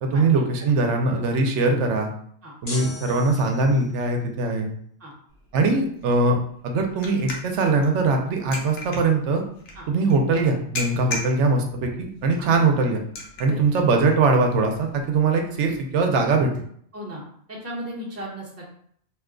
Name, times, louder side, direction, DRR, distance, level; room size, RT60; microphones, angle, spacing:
voice 1, 0.0-2.1 2.6-4.7 5.5-6.4 6.6-9.4 9.9-13.0 13.4-16.5, right 3 dB, 85° right, 3 dB, 0.9 m, -21 dB
sound 1, 2.7-4.0, left 2 dB, 40° left, 0.7 m, -37 dB
sound 2, 5.3-16.6, left 2 dB, 80° left, 1.0 m, -40 dB
voice 2, 16.9-18.7, equal, 15° right, -6 dB, 0.9 m, -36 dB
2.8 x 2.2 x 3.6 m, 0.64 s
omnidirectional pair, 1.2 m